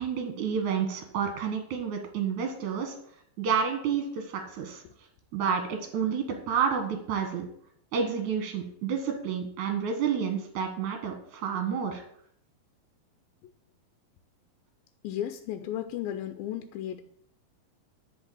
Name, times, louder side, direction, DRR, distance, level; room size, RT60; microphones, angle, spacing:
voice 1, 0.0-2.9 3.4-4.8 5.3-7.5 7.9-12.0, right 7 dB, 60° right, 4 dB, 2.7 m, -30 dB
voice 2, 15.0-17.0, left 11 dB, 90° left, 7 dB, 2.4 m, -34 dB
10.0 x 5.4 x 7.6 m, 0.67 s
omnidirectional pair, 4.1 m